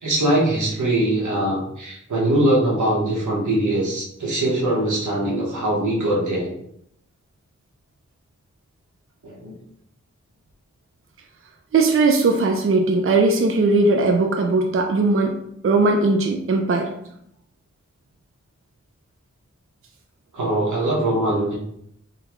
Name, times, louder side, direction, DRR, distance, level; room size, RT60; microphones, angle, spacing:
voice 1, 0.0-6.5 9.2-9.6 20.3-21.6, right 1 dB, 85° right, -4 dB, 1.1 m, -22 dB
voice 2, 11.7-15.4 15.6-16.9, right 3 dB, 50° right, 3 dB, 0.4 m, -19 dB
3.7 x 2.3 x 3.0 m, 0.73 s
wide cardioid pair, 40°, 29 cm